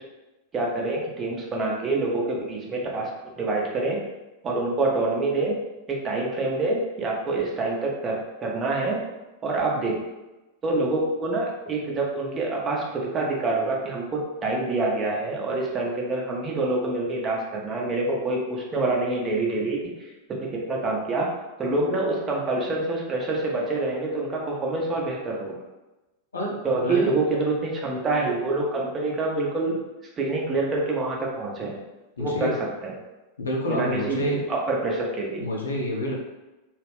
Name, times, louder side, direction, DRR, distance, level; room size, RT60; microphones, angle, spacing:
voice 1, 0.5-4.0 4.4-5.6 5.9-9.0 9.4-9.9 10.6-21.3 21.6-25.6 26.6-29.8 30.2-31.8 32.2-32.5 32.8-32.9 33.7-35.4, right 2 dB, 25° right, -2 dB, 0.6 m, -26 dB
voice 2, 26.3-27.1 32.2-32.5 33.4-34.4 35.4-36.1, equal, 70° left, -2 dB, 0.6 m, -28 dB
2.3 x 2.1 x 3.3 m, 1.1 s
figure-of-eight pair, 90°, 0 cm